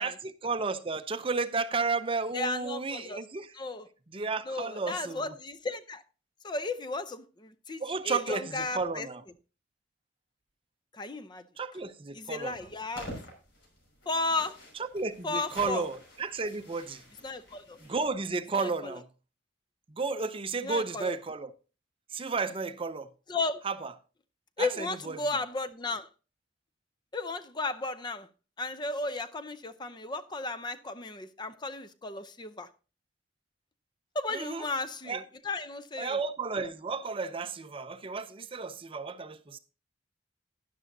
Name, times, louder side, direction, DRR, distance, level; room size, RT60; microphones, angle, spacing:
voice 1, 0.0-3.5 4.1-5.3 7.8-9.2 11.6-12.5 14.9-17.0 17.9-19.0 19.9-21.5 22.1-23.1 23.6-23.9 24.6-25.2 34.3-34.6 35.1-35.2 36.0-39.6, right 4 dB, 30° right, 0.6 m, -33 dB
voice 2, 2.3-3.2 3.5-3.9 4.5-6.0 6.4-9.1 10.9-11.4 12.1-13.1 14.1-14.6 15.2-15.9 17.2-17.8 18.5-19.0 20.6-21.1 23.3-23.6 24.6-26.1 27.1-28.3 28.6-32.7 34.1-36.2, left 3 dB, 25° left, 0.5 m, -34 dB
sound 1, 12.4-18.1, equal, 70° left, 5.6 m, -48 dB
12.5 x 10.0 x 2.7 m
head